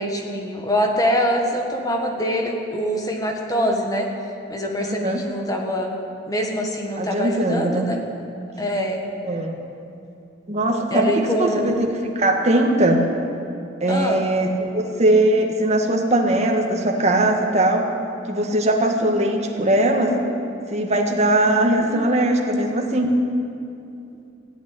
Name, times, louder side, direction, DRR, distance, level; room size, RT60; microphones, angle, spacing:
voice 1, 0.0-4.1 4.5-5.9 6.3-8.0 8.6-9.0 10.9-11.8 13.9-14.2 21.8-22.2, equal, 20° left, 2 dB, 1.4 m, -24 dB
voice 2, 4.8-5.2 7.0-7.8 9.2-9.6 10.5-11.9 12.1-13.1 13.8-17.9 18.3-20.1 20.7-23.1, right 1 dB, 35° right, 1 dB, 1.8 m, -20 dB
16.0 x 8.5 x 9.9 m, 2.7 s
head